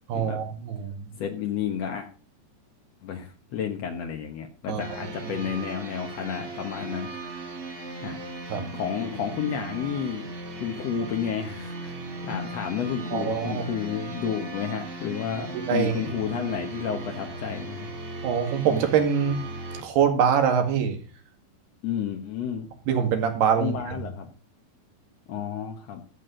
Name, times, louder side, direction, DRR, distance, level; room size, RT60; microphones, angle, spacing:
voice 1, 0.1-1.1 4.7-5.3 8.5-8.7 13.1-13.6 15.5-16.1 18.2-19.4 19.8-21.0 22.9-24.0, right 7 dB, 85° right, 5 dB, 4.0 m, -24 dB
voice 2, 1.2-2.1 3.0-7.4 8.0-8.2 8.7-10.3 10.6-17.9 21.8-22.7 23.6-24.3 25.3-26.0, left 8 dB, 65° left, 3 dB, 1.7 m, -31 dB
sound 1, 4.8-19.8, right 2 dB, 35° right, 2.2 m, -37 dB
14.0 x 8.5 x 3.8 m, 0.37 s
omnidirectional pair, 4.5 m